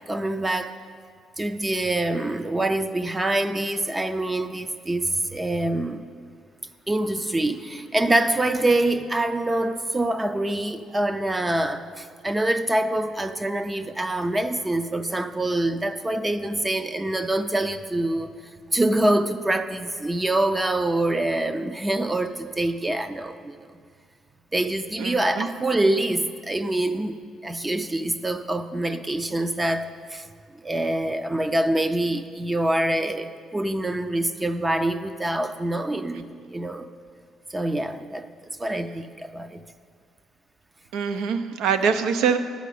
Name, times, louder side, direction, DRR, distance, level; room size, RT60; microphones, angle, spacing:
voice 1, 0.1-0.8 1.4-6.0 6.9-18.3 18.7-23.6 24.5-27.2 27.4-30.3 30.6-36.9 37.5-38.3 38.6-39.6, right 1 dB, 15° right, 10 dB, 0.4 m, -25 dB
voice 2, 25.0-25.5 40.9-42.4, right 6 dB, 85° right, 10 dB, 0.6 m, -24 dB
11.0 x 5.1 x 8.5 m, 2.1 s
cardioid pair, 145°, 0 cm